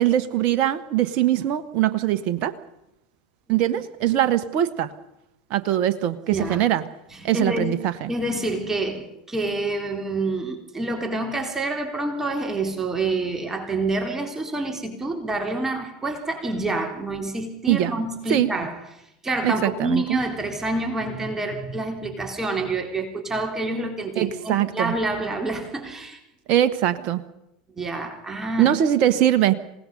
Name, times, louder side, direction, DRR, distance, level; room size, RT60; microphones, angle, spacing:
voice 1, 0.0-2.5 3.5-4.9 5.5-6.8 7.2-8.1 17.7-18.0 18.3-18.5 19.4-20.2 24.2-24.9 26.5-27.2 28.6-29.5, right 12 dB, 45° right, 11 dB, 1.3 m, -22 dB
voice 2, 6.3-6.6 7.1-7.8 8.1-18.8 19.2-26.2 27.8-28.7, right 2 dB, 15° right, 3 dB, 3.7 m, -27 dB
27.0 x 18.0 x 5.6 m, 0.85 s
figure-of-eight pair, 80°, 3 cm